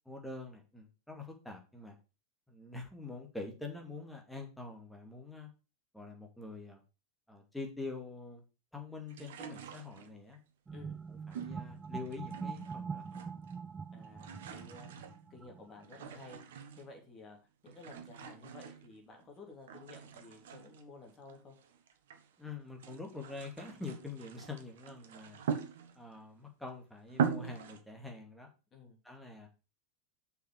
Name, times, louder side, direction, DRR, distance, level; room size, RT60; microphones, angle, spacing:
voice 1, 0.1-2.0 2.5-5.5 5.9-6.8 7.3-8.4 8.7-10.4 11.1-13.2 22.4-25.4 26.0-28.5 29.0-29.5, left 3 dB, 5° left, 1 dB, 2.3 m, -45 dB
sound 1, 9.1-10.4 11.3-12.8 13.0-13.7 13.9-17.0 17.7-19.3 19.7-22.3 22.7-26.2 26.7-26.8 27.1-27.8, right 7 dB, 55° right, 1.1 m, -42 dB
sound 2, 10.7-15.9, right 6 dB, 15° right, 0.4 m, -43 dB
voice 2, 13.9-14.9 15.3-16.4 16.8-21.6 28.7-29.0, left 3 dB, 25° left, 2 dB, 3.2 m, -53 dB
6.5 x 5.6 x 6.3 m, 0.31 s
figure-of-eight pair, 90°, 0 cm